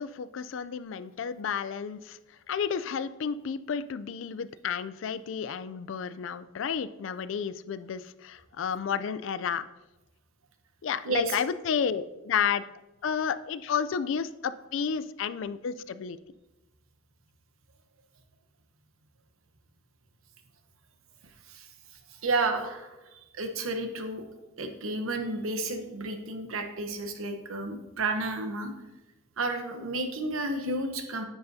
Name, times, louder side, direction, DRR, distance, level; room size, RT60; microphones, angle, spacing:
voice 1, 0.0-2.2 2.5-9.7 10.8-12.6 13.0-16.2, left 7 dB, 65° left, 14 dB, 0.3 m, -31 dB
voice 2, 11.0-11.4 21.5-21.7 22.2-24.2 24.6-28.7 29.4-31.3, right 2 dB, 80° right, 6 dB, 1.0 m, -31 dB
9.9 x 7.8 x 2.7 m, 1.0 s
head